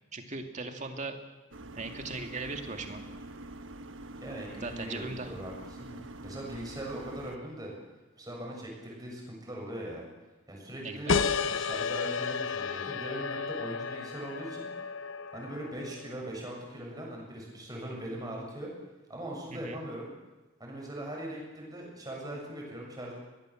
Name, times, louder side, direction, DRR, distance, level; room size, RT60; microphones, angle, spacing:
voice 1, 0.1-1.2 1.8-3.0 4.6-5.3 10.8-11.2 19.5-19.8, right 3 dB, 40° right, 5 dB, 2.4 m, -38 dB
sound 1, 1.5-7.4, right 2 dB, 75° right, 1.4 m, -45 dB
voice 2, 4.2-7.7 8.2-10.0 10.5-11.2 11.5-14.7 15.3-18.7 19.1-20.1 20.6-23.1, right 1 dB, 20° right, -1 dB, 7.5 m, -40 dB
sound 2, 11.1-16.3, left 5 dB, 85° left, 0.9 m, -32 dB
23.5 x 18.5 x 7.9 m, 1.1 s
head